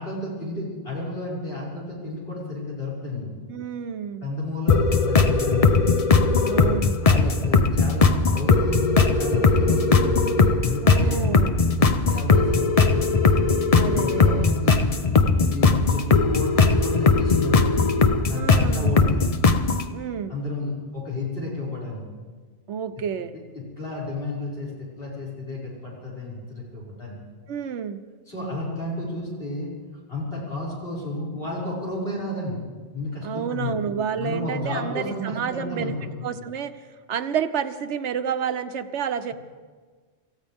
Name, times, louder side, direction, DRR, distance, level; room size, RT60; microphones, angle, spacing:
voice 1, 0.0-3.3 4.2-5.8 7.0-13.2 13.9-14.9 15.5-17.8 18.2-19.2 20.3-22.0 23.5-27.2 28.3-29.7 30.1-32.6 32.9-33.8 34.2-36.3, left 2 dB, 55° left, -6 dB, 6.2 m, -32 dB
voice 2, 3.5-4.3 6.5-7.0 10.8-11.5 13.7-14.5 18.3-18.9 19.9-20.3 22.7-23.4 27.5-28.0 33.2-36.7 37.1-39.3, right 7 dB, 85° right, 11 dB, 1.1 m, -29 dB
sound 1, 4.7-19.9, left 4 dB, 35° left, 0.7 m, -19 dB
26.5 x 15.0 x 3.6 m, 1.4 s
omnidirectional pair, 1.2 m